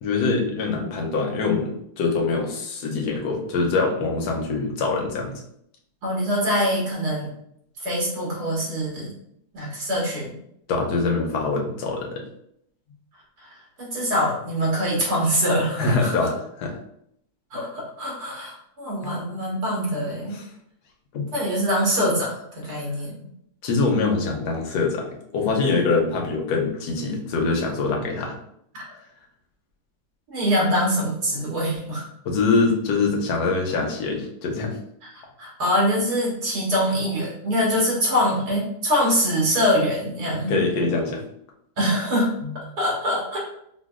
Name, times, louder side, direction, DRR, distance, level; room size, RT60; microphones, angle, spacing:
voice 1, 0.0-5.4 9.6-9.7 10.7-12.2 15.8-16.8 19.0-19.3 20.3-20.4 21.1-21.2 23.6-28.4 32.2-34.8 40.5-41.2 42.4-42.6, left 4 dB, 85° left, 1 dB, 1.2 m, -24 dB
voice 2, 6.0-7.3 7.8-9.1 9.5-10.4 13.4-16.3 17.5-20.4 21.3-23.3 28.7-28.8 30.3-32.1 35.4-40.5 41.8-42.3 42.8-43.4, equal, 80° right, -4 dB, 1.9 m, -24 dB
4.9 x 2.2 x 2.4 m, 0.73 s
omnidirectional pair, 1.7 m